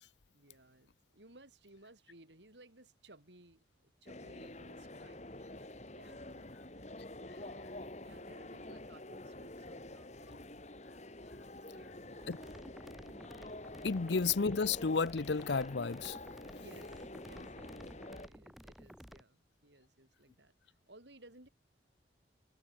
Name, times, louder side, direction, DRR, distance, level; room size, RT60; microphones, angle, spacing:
voice 1, 0.3-5.5 5.8-6.6 7.3-10.4 11.3-12.4 16.5-17.9 18.2-21.5, right 2 dB, 75° right, 6.1 m, -61 dB
sound 1, 4.0-18.3, left 1 dB, 40° left, 3.1 m, -48 dB
sound 2, 12.2-19.2, equal, ahead, 5.7 m, -54 dB
voice 2, 13.8-16.2, left 4 dB, 75° left, 0.7 m, -32 dB
head